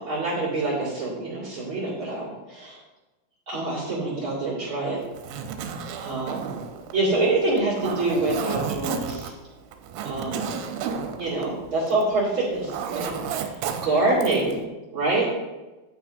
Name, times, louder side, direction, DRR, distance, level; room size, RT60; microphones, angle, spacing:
voice 1, 0.0-2.8 3.5-5.0 6.0-6.5 6.9-9.3 10.0-10.5 11.2-13.4 13.8-14.6 14.9-15.3, right 2 dB, 45° right, -8 dB, 1.6 m, -26 dB
Zipper (clothing), 5.0-12.2 12.4-14.6, right 7 dB, 80° right, 3.0 m, -32 dB
11.5 x 8.7 x 2.6 m, 1.1 s
omnidirectional pair, 5.9 m